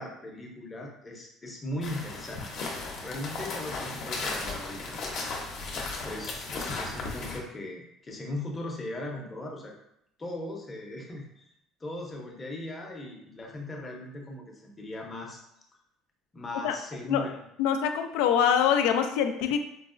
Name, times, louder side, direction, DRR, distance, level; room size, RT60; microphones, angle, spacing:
voice 1, 0.0-2.5 3.0-5.2 6.0-9.7 10.2-11.5 11.8-15.4 16.3-17.4, left 1 dB, 20° left, 0 dB, 0.6 m, -38 dB
sound 1, 1.8-7.4, left 3 dB, 55° left, 0.7 m, -35 dB
voice 2, 17.6-19.6, left 8 dB, 85° left, 7 dB, 0.3 m, -24 dB
4.5 x 2.0 x 2.5 m, 0.77 s
cardioid pair, 125°, 0 cm